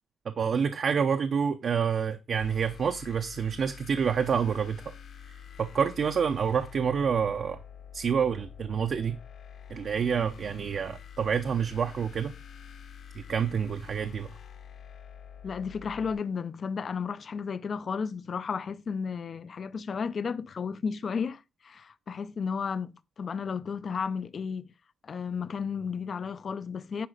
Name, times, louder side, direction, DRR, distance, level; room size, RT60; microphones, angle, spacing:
voice 1, 0.3-4.8 5.6-7.6 7.9-9.2 9.7-12.3 13.2-14.3, right 7 dB, 55° right, 0.7 m, -28 dB
sound 1, 2.4-16.1, left 8 dB, 75° left, 1.8 m, -47 dB
voice 2, 15.4-24.7 25.0-27.1, left 6 dB, 45° left, 0.5 m, -33 dB
10.0 x 4.9 x 5.0 m
wide cardioid pair, 155°, 0 cm